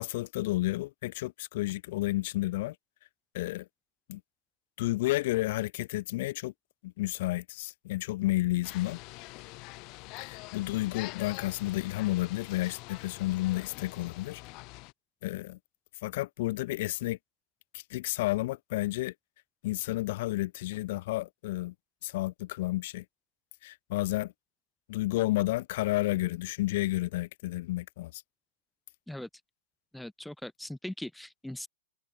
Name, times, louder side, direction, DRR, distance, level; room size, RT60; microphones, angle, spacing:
voice 1, 0.0-2.8 3.3-3.7 4.1-4.2 4.8-6.5 6.8-9.0 10.2-14.4 15.2-15.6 16.0-17.2 17.7-19.1 19.6-21.7 22.0-23.0 23.6-24.3 24.9-28.2, left 18 dB, 55° left, 0.4 m, -31 dB
sound 1, 8.6-14.9, left 26 dB, 40° left, 1.2 m, -45 dB
voice 2, 29.9-31.7, left 1 dB, ahead, 2.2 m, -40 dB
hypercardioid pair, 135°, 0 cm